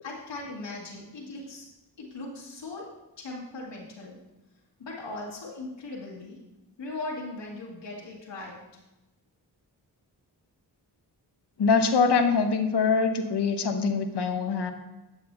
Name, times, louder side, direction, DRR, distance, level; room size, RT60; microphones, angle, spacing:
voice 1, 0.0-1.7 2.0-4.2 4.8-6.4 6.8-8.6, left 2 dB, 85° left, -4 dB, 2.1 m, -39 dB
voice 2, 11.6-14.7, left 5 dB, 70° left, 7 dB, 1.0 m, -24 dB
8.1 x 7.6 x 3.4 m, 1.0 s
cardioid pair, 50°, 43 cm